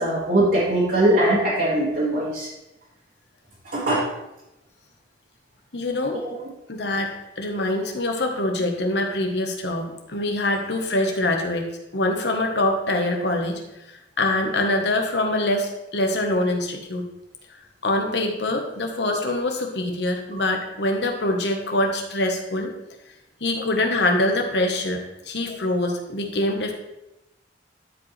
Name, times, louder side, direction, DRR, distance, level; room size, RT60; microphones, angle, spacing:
voice 1, 0.0-2.5 3.7-4.0, right 1 dB, 60° right, -10 dB, 2.3 m, -21 dB
voice 2, 5.7-6.2 6.7-13.6 13.9-17.0 17.8-22.7 23.4-26.7, left 1 dB, 65° left, 3 dB, 1.3 m, -24 dB
12.5 x 5.1 x 3.3 m, 0.93 s
head